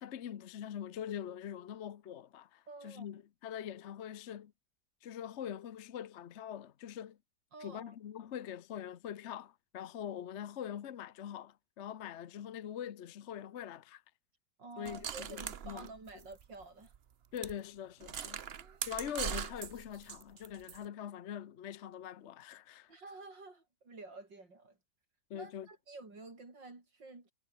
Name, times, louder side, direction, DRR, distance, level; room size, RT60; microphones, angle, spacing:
voice 1, 0.0-4.5 5.0-7.2 7.6-14.0 14.8-15.9 17.3-18.4 18.8-22.9 25.3-25.7, left 9 dB, 50° left, 0.9 m, -43 dB
voice 2, 2.7-3.1 7.5-7.9 14.6-16.9 18.4-18.8 22.9-24.8 25.3-27.3, right 3 dB, 85° right, 6.1 m, -50 dB
sound 1, 14.8-16.6 16.9-17.0 17.4-17.5 18.0-20.8, right 8 dB, 50° right, 0.8 m, -41 dB
omnidirectional pair, 1.9 m